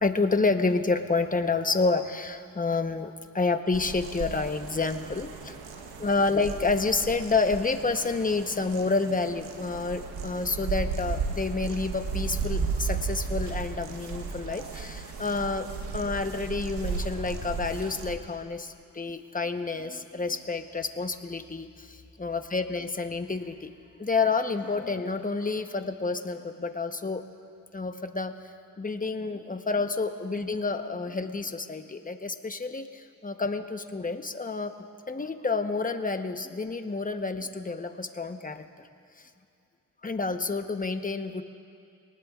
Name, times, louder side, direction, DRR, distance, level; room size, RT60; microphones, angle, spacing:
voice 1, 0.0-5.6 6.0-15.7 15.9-23.7 24.0-27.2 27.7-28.3 28.8-34.7 35.1-38.7 40.0-41.4, left 3 dB, 20° left, 7 dB, 1.0 m, -29 dB
sound 1, 3.7-18.1, right 4 dB, 90° right, 1.2 m, -35 dB
sound 2, 10.9-17.1 17.4-18.1, right 2 dB, 50° right, 3.4 m, -55 dB
24.0 x 19.0 x 2.4 m, 2.4 s
cardioid pair, 60°, 37 cm